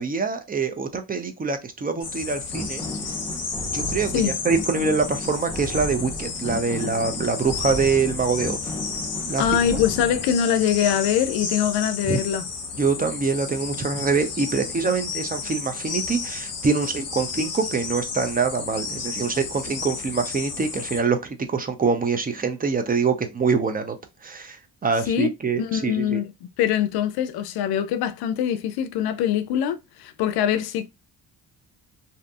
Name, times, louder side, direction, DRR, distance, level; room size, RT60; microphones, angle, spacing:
voice 1, 0.0-2.8 3.7-8.7 9.3-9.4 9.7-9.8 12.1-12.2 12.8-24.0 24.2-26.2, right 4 dB, 25° right, 0.5 m, -25 dB
sound 1, 2.0-21.0, left 4 dB, 45° left, 0.8 m, -32 dB
sound 2, 2.5-10.3, left 1 dB, 10° left, 0.8 m, -34 dB
voice 2, 9.4-12.5 25.1-26.3 26.6-30.9, left 9 dB, 90° left, 0.5 m, -23 dB
2.7 x 2.5 x 2.3 m
cardioid pair, 90°, 37 cm